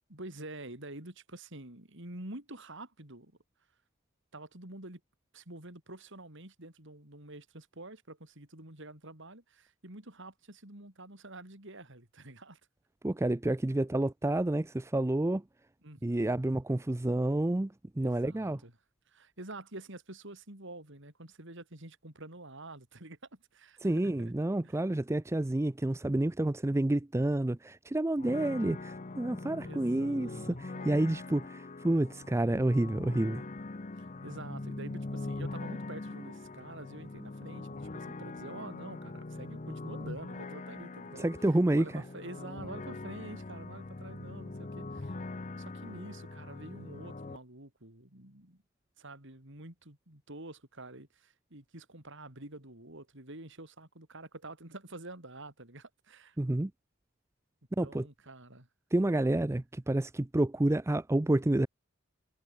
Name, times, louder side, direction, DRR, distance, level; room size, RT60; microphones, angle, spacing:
voice 1, 0.1-3.3 4.3-5.0 5.3-12.6 15.8-16.4 18.0-18.7 19.1-24.3 24.6-24.8 29.6-31.2 33.9-41.3 41.7-45.2 45.6-48.6 49.0-56.4 57.8-58.7 59.1-59.4, right 2 dB, 60° right, 4.8 m, -48 dB
voice 2, 13.0-15.4 16.0-18.6 23.8-33.4 41.2-42.0 56.4-56.7 57.8-58.1 58.9-61.7, right 1 dB, 15° right, 0.4 m, -29 dB
sound 1, 28.2-47.4, left 2 dB, 35° left, 0.8 m, -42 dB
head